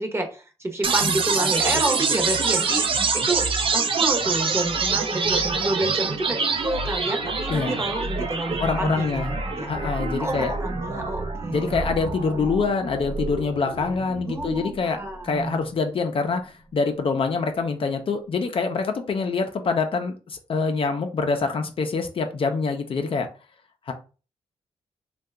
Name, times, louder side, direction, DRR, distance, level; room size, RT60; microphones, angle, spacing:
voice 1, 0.0-2.8 3.1-9.1 9.6-9.7 10.2-11.8 14.3-15.6, right 2 dB, 20° right, 4 dB, 0.8 m, -29 dB
sound 1, 0.8-14.8, right 4 dB, 50° right, 0.6 m, -26 dB
voice 2, 7.5-7.8 8.6-9.4 9.7-10.5 11.5-15.0 15.2-23.3 23.9-24.0, left 4 dB, 50° left, 6 dB, 0.5 m, -25 dB
2.7 x 2.2 x 3.4 m, 0.35 s
cardioid pair, 70°, 11 cm